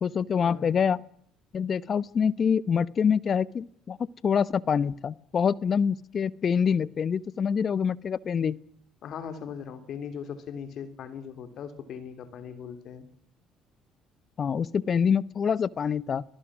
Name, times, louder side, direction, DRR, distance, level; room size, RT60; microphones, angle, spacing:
voice 1, 0.0-1.0 1.5-4.0 4.2-8.6 14.4-16.2, left 7 dB, 45° left, 20 dB, 0.9 m, -25 dB
voice 2, 9.0-13.1, left 7 dB, 60° left, 10 dB, 3.2 m, -39 dB
29.5 x 19.0 x 6.2 m, 0.65 s
supercardioid pair, 70°, 0 cm